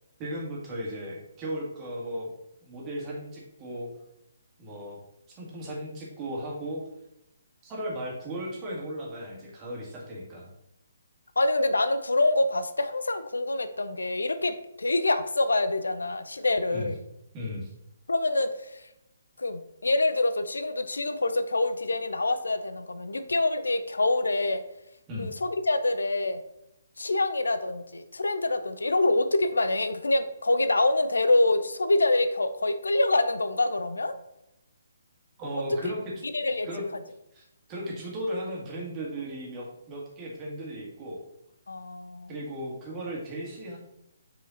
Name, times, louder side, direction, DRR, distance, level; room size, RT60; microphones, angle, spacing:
voice 1, 0.2-2.3 2.6-3.9 4.6-5.0 5.4-6.8 7.6-10.5 16.7-16.9 17.3-17.7 25.1-25.3 35.4-36.1 36.6-36.8 37.3-41.2 42.3-43.8, equal, 20° right, -3 dB, 2.0 m, -36 dB
voice 2, 11.4-17.0 18.1-18.8 19.4-24.6 25.2-26.4 27.0-34.1 36.3-36.7 41.7-42.3, left 2 dB, 75° left, 10 dB, 0.5 m, -26 dB
5.8 x 4.9 x 4.0 m, 0.86 s
figure-of-eight pair, 135°, 0 cm